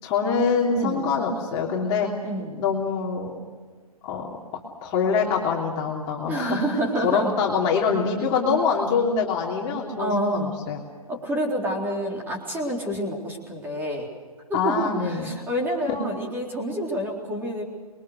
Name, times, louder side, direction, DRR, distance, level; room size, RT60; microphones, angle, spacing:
voice 1, 0.0-2.1 2.5-3.4 4.0-4.3 4.8-6.6 7.0-10.8 14.5-15.3 15.9-16.0, left 5 dB, 20° left, -1 dB, 3.2 m, -24 dB
voice 2, 0.7-1.1 2.2-2.5 6.3-7.3 10.0-10.6 11.1-14.1 14.5-17.6, right 1 dB, 10° right, 0 dB, 3.9 m, -28 dB
26.5 x 22.5 x 6.6 m, 1.5 s
figure-of-eight pair, 135°, 20 cm